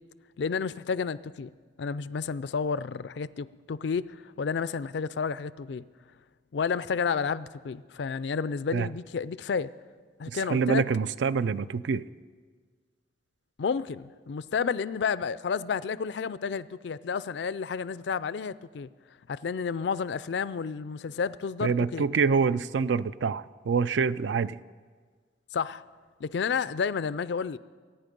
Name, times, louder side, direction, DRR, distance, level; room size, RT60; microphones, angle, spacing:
voice 1, 0.4-1.5 1.8-5.8 6.5-9.7 10.2-10.8 13.6-18.9 19.3-22.1 25.5-25.8 26.2-27.6, left 5 dB, 70° left, 0.4 m, -31 dB
voice 2, 10.3-12.0 21.6-24.6, right 5 dB, 75° right, 0.4 m, -26 dB
23.0 x 9.4 x 5.3 m
head